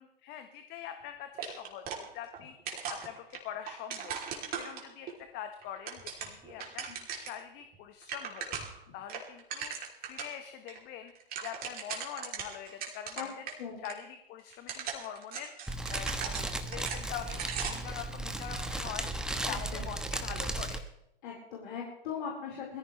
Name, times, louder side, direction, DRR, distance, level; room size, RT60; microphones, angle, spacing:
voice 1, 0.0-1.8 2.1-2.5 2.9-4.2 4.5-6.9 7.1-8.6 8.9-9.7 10.0-11.1 11.4-13.5 13.8-15.5 15.9-19.1 19.5-20.8, left 10 dB, 35° left, 7 dB, 1.3 m, -44 dB
sound 1, 1.4-2.4 2.7-5.1 5.6-7.4 7.7-7.8 8.0-8.8 9.1-10.3 10.7-10.8 11.1-13.6 13.8-13.9 14.5-17.9, right 6 dB, 30° right, 3.2 m, -39 dB
Fire, 15.7-20.8, right 2 dB, ahead, 1.1 m, -35 dB
voice 2, 19.5-19.8 21.2-22.8, left 7 dB, 55° left, -3 dB, 4.4 m, -39 dB
21.5 x 14.5 x 3.2 m, 0.85 s
figure-of-eight pair, 105°, 30 cm